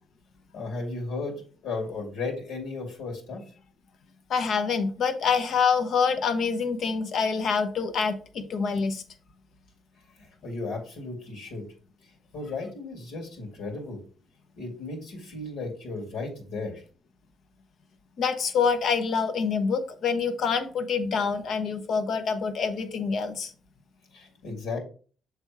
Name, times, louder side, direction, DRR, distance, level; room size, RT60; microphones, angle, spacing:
voice 1, 0.5-3.4 10.2-11.7 12.3-14.0 14.6-16.8 24.1-24.8, left 3 dB, 85° left, 0 dB, 2.2 m, -35 dB
voice 2, 4.3-9.0 18.2-23.5, left 5 dB, 65° left, 8 dB, 0.9 m, -26 dB
7.0 x 3.4 x 4.6 m, 0.41 s
cardioid pair, 90°, 0 cm